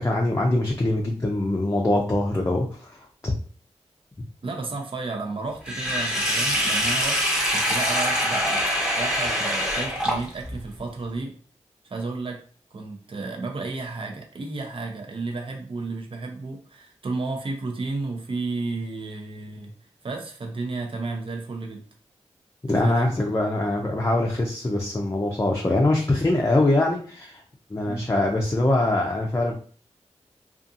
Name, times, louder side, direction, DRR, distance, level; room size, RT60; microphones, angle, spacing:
voice 1, 0.0-3.3 22.7-27.4 27.7-29.5, left 2 dB, 25° left, -1 dB, 0.5 m, -23 dB
voice 2, 4.4-7.2 7.5-8.7 9.0-11.3 11.8-12.4 12.7-19.7 20.0-21.9 22.7-23.1 27.8-28.1, right 3 dB, 50° right, 3 dB, 0.6 m, -32 dB
Sink (filling or washing), 5.6-10.6, equal, 5° right, 0.9 m, -24 dB
2.5 x 2.4 x 2.6 m, 0.43 s
cardioid pair, 50°, 12 cm